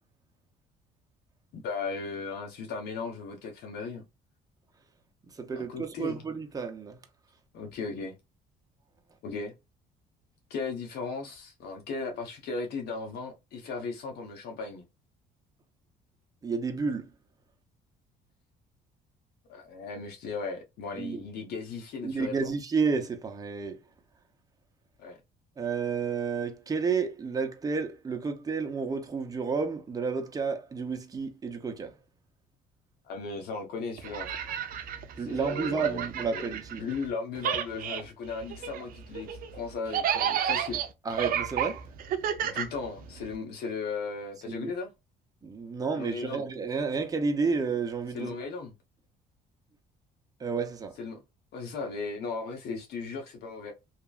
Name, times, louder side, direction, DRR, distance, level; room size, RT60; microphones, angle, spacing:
voice 1, 1.5-4.0 5.5-6.2 7.5-8.1 9.2-9.5 10.5-14.8 19.5-22.5 25.0-25.2 33.1-34.3 35.2-36.1 36.3-36.5 36.8-40.8 42.4-44.9 45.9-46.5 48.1-48.7 51.0-51.2 51.5-53.7, left 4 dB, 70° left, 0.9 m, -36 dB
voice 2, 5.3-7.0 16.4-17.1 20.9-21.2 22.0-23.8 25.6-32.0 35.2-36.8 41.0-41.9 44.5-44.7 45.4-48.4 50.4-51.0, right 5 dB, 20° right, 0.7 m, -31 dB
sound 1, 34.0-37.1 37.4-43.4, right 9 dB, 60° right, 0.5 m, -32 dB
2.9 x 2.5 x 2.4 m
cardioid pair, 110°, 17 cm